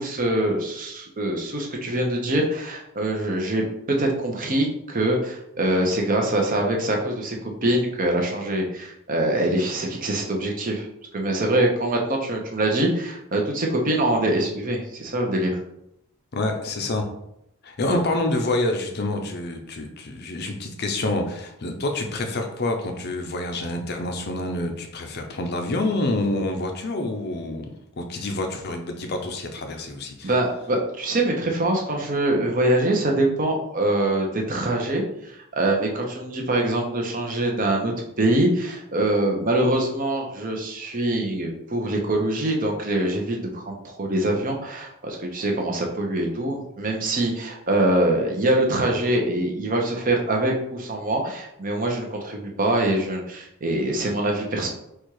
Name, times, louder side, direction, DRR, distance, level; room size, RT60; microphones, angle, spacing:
voice 1, 0.0-10.9 11.1-15.6 17.9-18.0 30.2-54.7, right 1 dB, 40° right, 1 dB, 0.7 m, -24 dB
voice 2, 16.3-17.1 17.6-27.6 28.0-30.3, left 2 dB, 45° left, 4 dB, 0.5 m, -27 dB
4.3 x 2.3 x 4.6 m, 0.79 s
head